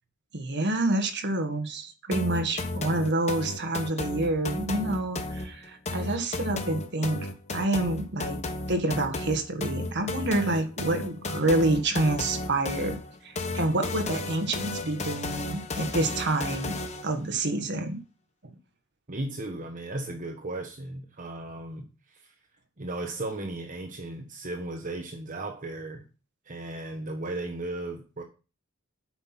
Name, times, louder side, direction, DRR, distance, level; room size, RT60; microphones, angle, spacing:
voice 1, 0.3-7.3 7.5-8.4 8.7-13.0 13.2-16.7 17.0-18.0 18.4-18.5, right 2 dB, 55° right, 1.6 m, -28 dB
sound 1, 2.1-17.1, left 2 dB, 35° left, 1.1 m, -34 dB
voice 2, 19.1-22.3 22.8-26.0 26.5-28.2, right 2 dB, 40° right, 1.1 m, -36 dB
8.8 x 6.0 x 5.8 m
head